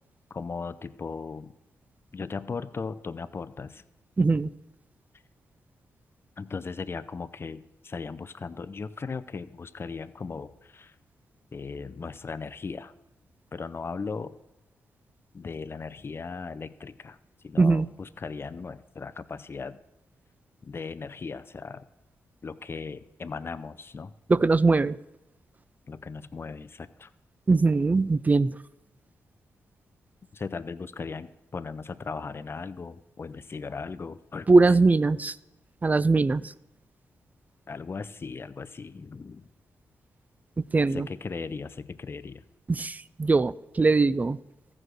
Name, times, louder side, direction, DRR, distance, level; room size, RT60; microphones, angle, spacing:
voice 1, 0.3-1.6 2.1-3.8 6.4-10.9 11.5-12.9 13.5-14.4 15.3-17.2 17.4-19.8 20.6-21.8 22.4-24.1 25.9-27.1 30.3-34.5 37.7-39.5 40.9-42.4, left 4 dB, 40° left, 13 dB, 0.6 m, -37 dB
voice 2, 4.2-4.5 17.6-17.9 24.3-25.0 27.5-28.5 34.5-35.3 35.8-36.5 40.6-41.1 42.7-44.4, right 3 dB, 25° right, 19 dB, 0.4 m, -21 dB
14.0 x 4.9 x 6.3 m, 0.96 s
cardioid pair, 60°, 6 cm